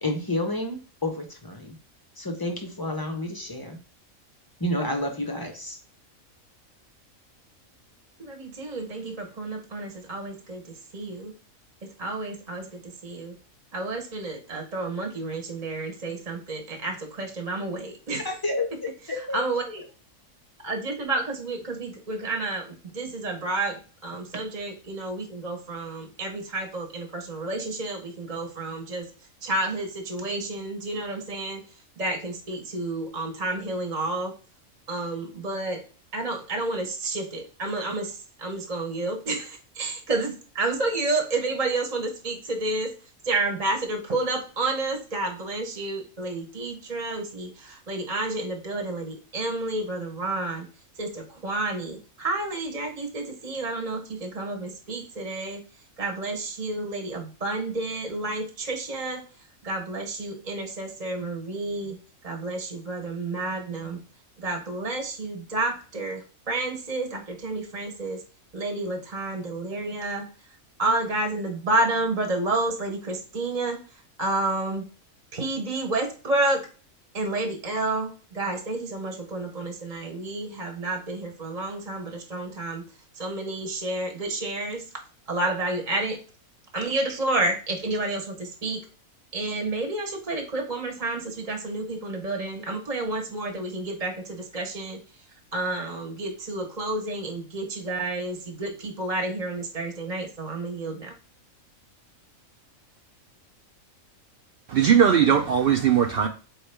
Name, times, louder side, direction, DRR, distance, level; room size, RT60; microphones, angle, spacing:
voice 1, 0.0-1.8 2.2-3.8 4.6-5.8 18.2-19.4, left 1 dB, 35° left, 0.3 m, -30 dB
voice 2, 8.2-11.3 11.8-13.4 13.7-18.3 19.3-19.8 20.6-29.1 29.4-31.6 32.0-34.3 34.9-35.8 36.1-42.9 43.2-50.7 51.0-55.6 56.0-59.2 59.6-62.0 62.2-64.0 64.4-68.2 68.5-70.3 70.8-73.8 74.2-74.8 75.3-76.6 77.1-82.8 83.1-84.9 85.3-86.2 86.7-88.8 89.3-95.0 95.5-101.1, right 2 dB, 35° right, 0.9 m, -30 dB
voice 3, 104.7-106.3, right 8 dB, 70° right, 0.5 m, -19 dB
4.6 x 3.2 x 3.3 m
omnidirectional pair, 1.4 m